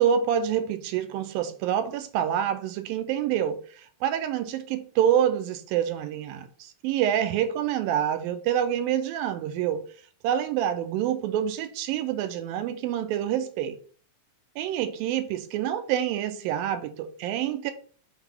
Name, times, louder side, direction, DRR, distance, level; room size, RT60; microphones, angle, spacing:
voice 1, 0.0-9.8 10.2-13.8 14.6-17.7, right 10 dB, 85° right, 2.4 m, -27 dB
5.7 x 4.0 x 4.4 m
omnidirectional pair, 4.1 m